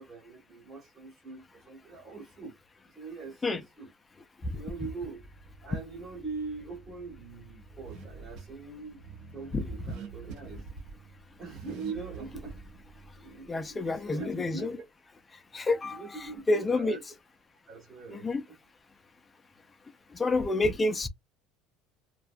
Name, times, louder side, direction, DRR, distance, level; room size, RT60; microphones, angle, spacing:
voice 1, 0.0-2.5 2.8-3.9 4.5-5.3 5.6-9.0 9.3-10.7 11.4-12.6 13.2-14.8 15.8-17.1 17.7-18.3, right 4 dB, 30° right, 1.0 m, -42 dB
Car / Accelerating revving vroom, 5.1-14.3, right 4 dB, 50° right, 0.6 m, -48 dB
voice 2, 13.5-14.7 15.5-16.0 16.5-17.0 18.1-18.4 20.1-21.1, left 2 dB, 10° left, 0.3 m, -28 dB
2.6 x 2.1 x 2.4 m
cardioid pair, 170°, 0 cm